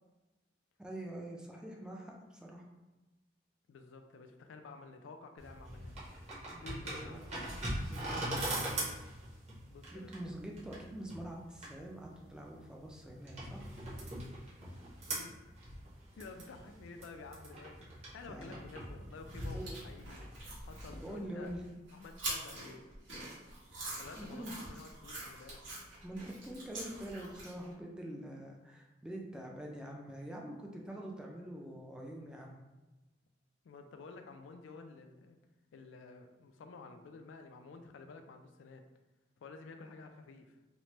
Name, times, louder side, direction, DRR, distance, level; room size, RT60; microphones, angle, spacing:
voice 1, 0.8-2.7 6.5-7.3 7.9-8.4 9.9-13.7 18.3-18.6 19.5-19.8 20.9-21.7 24.1-24.5 26.0-32.6, right 1 dB, 5° right, -1 dB, 0.3 m, -45 dB
voice 2, 3.7-6.0 6.6-7.3 9.7-10.1 15.1-15.5 16.2-19.6 19.8-20.2 20.7-21.5 21.9-22.8 24.0-25.6 33.6-35.4 35.7-38.8 39.4-40.6, left 4 dB, 90° left, 6 dB, 0.3 m, -51 dB
sound 1, 5.4-21.1, right 1 dB, 35° right, 0.8 m, -42 dB
sound 2, 19.2-27.7, right 2 dB, 90° right, 1.2 m, -45 dB
3.1 x 2.1 x 3.0 m, 1.1 s
head